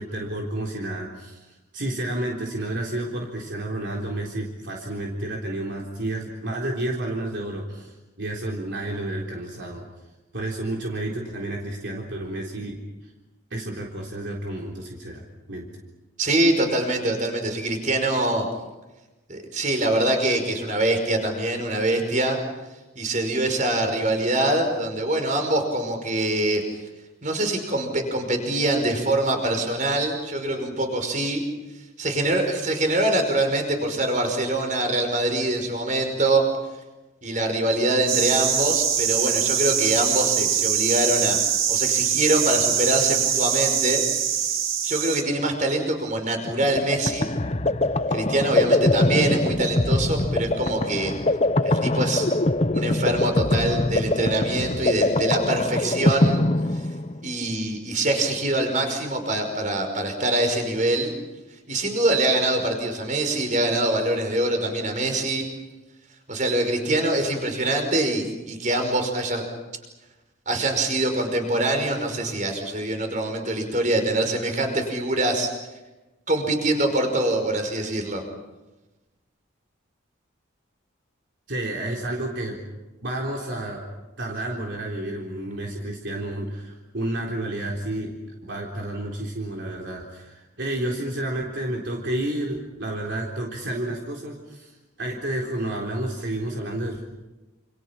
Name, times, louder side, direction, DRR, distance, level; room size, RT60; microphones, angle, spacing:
voice 1, 0.0-9.9 10.3-12.8 13.0-13.1 13.5-15.2 15.5-15.7 81.5-82.6 83.0-83.8 84.2-88.2 88.5-97.1, right 1 dB, 60° right, -1 dB, 3.8 m, -30 dB
voice 2, 16.2-18.5 19.3-22.4 23.0-26.6 27.2-31.4 32.0-36.4 37.2-41.4 41.7-44.0 44.3-44.4 44.8-47.3 48.1-51.1 51.6-52.3 52.7-56.4 56.7-56.8 57.2-61.1 61.7-65.5 66.3-69.4 70.5-75.5 76.3-78.2, right 1 dB, 40° right, 5 dB, 5.4 m, -24 dB
sound 1, 38.1-45.2, right 8 dB, 85° right, 3.0 m, -23 dB
sound 2, 46.5-57.3, left 2 dB, 30° left, 0.9 m, -23 dB
29.0 x 28.0 x 6.0 m, 1.1 s
head